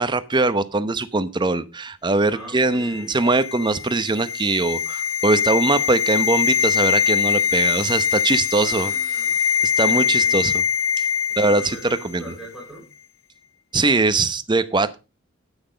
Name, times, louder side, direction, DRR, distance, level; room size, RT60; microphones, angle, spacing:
voice 1, 0.0-8.9 9.6-10.6 11.4-12.3 13.7-15.0, right 3 dB, 25° right, 13 dB, 0.8 m, -21 dB
voice 2, 2.3-3.2 8.5-10.4 11.4-12.8, right 1 dB, ahead, -4 dB, 5.7 m, -42 dB
sound 1, 2.8-12.0 12.3-12.5, left 8 dB, 75° left, 0.9 m, -23 dB
9.5 x 9.0 x 5.1 m, 0.30 s
head